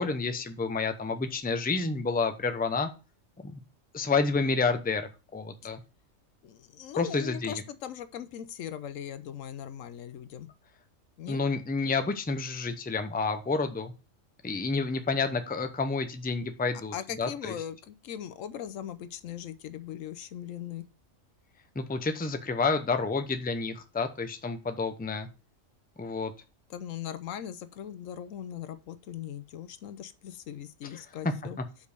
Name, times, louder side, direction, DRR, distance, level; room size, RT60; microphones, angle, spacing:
voice 1, 0.0-2.9 3.4-3.6 3.9-5.8 7.0-7.6 11.3-13.9 14.4-17.5 21.7-25.3 26.0-26.3 30.9-31.0, left 4 dB, 10° left, 0.6 m, -29 dB
voice 2, 6.4-10.5 11.2-11.4 16.9-20.8 26.7-31.6, left 10 dB, 80° left, 1.1 m, -39 dB
5.3 x 5.2 x 6.5 m
omnidirectional pair, 1.4 m